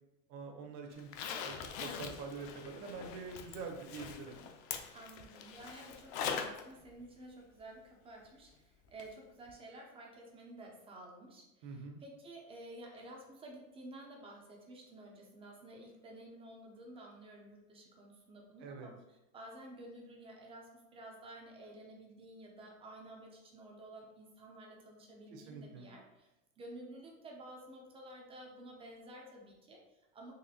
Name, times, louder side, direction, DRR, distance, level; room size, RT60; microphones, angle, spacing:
voice 1, 0.3-1.1 1.4-4.4 11.6-12.0 18.6-18.9 25.3-25.9, right 4 dB, 55° right, 3 dB, 0.7 m, -45 dB
Zipper (clothing), 1.0-6.6 7.0-7.1 9.0-9.1 9.5-9.6, left 7 dB, 55° left, 0.5 m, -42 dB
voice 2, 4.9-30.3, right 1 dB, 15° right, 0 dB, 0.3 m, -52 dB
4.1 x 2.9 x 2.7 m, 0.99 s
supercardioid pair, 150°, 40 cm